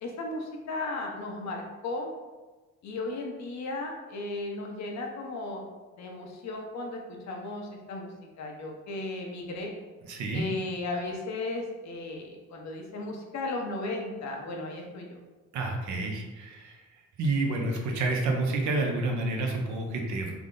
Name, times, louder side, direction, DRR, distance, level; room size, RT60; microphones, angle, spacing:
voice 1, 0.0-2.1 2.8-5.6 6.0-8.1 8.4-9.7 10.3-15.2, left 2 dB, 65° left, 1 dB, 0.8 m, -35 dB
voice 2, 10.1-10.5 15.5-16.8 17.2-20.3, right 2 dB, 70° right, 2 dB, 0.7 m, -29 dB
3.4 x 2.1 x 3.7 m, 1.2 s
cardioid pair, 90°, 30 cm